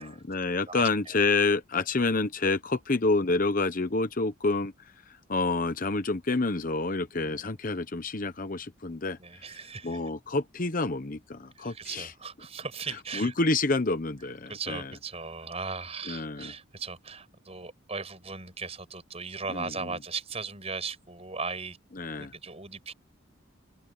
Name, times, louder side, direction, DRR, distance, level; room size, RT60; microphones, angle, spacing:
voice 1, 0.0-4.7 5.3-9.2 9.5-12.1 13.1-14.9 16.1-16.5 19.5-20.0 21.9-22.3, left 3 dB, 40° left, 0.9 m, -28 dB
voice 2, 9.2-10.0 11.6-13.3 14.5-21.8 22.2-22.9, right 4 dB, 30° right, 5.8 m, -38 dB
head